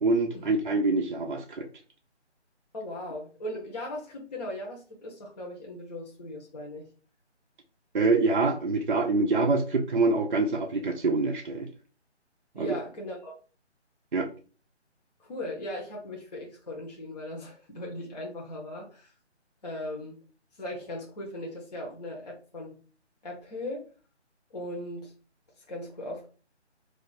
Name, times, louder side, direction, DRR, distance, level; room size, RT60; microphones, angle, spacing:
voice 1, 0.0-1.7 7.9-11.7 12.6-12.8 14.1-14.3, right 3 dB, 50° right, 2 dB, 0.4 m, -25 dB
voice 2, 2.7-6.9 12.5-13.3 15.2-19.1 19.6-20.2 20.6-22.7 23.2-23.8 24.5-25.1 25.6-26.3, left 1 dB, 35° left, -2 dB, 0.7 m, -38 dB
2.4 x 2.2 x 3.9 m, 0.37 s
figure-of-eight pair, 150°, 35 cm